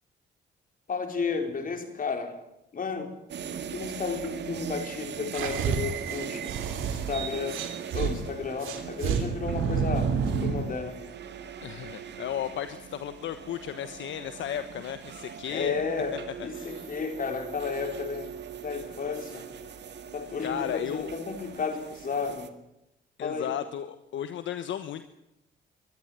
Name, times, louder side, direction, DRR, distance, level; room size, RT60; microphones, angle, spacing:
voice 1, 0.9-2.4 2.7-3.1 3.7-6.5 7.1-7.6 7.9-10.1 10.4-11.0 15.5-18.3 18.6-19.5 20.1-22.5 23.2-23.5, left 5 dB, 45° left, 6 dB, 4.5 m, -32 dB
sound 1, 3.3-22.5, right 7 dB, 60° right, 2.1 m, -40 dB
sound 2, 5.3-8.1 8.6-10.7, right 7 dB, 90° right, 3.5 m, -29 dB
voice 2, 11.6-15.7 16.4-16.9 20.4-21.1 23.2-25.0, left 10 dB, 70° left, 10 dB, 1.3 m, -34 dB
23.0 x 14.0 x 9.5 m, 0.86 s
cardioid pair, 90°, 20 cm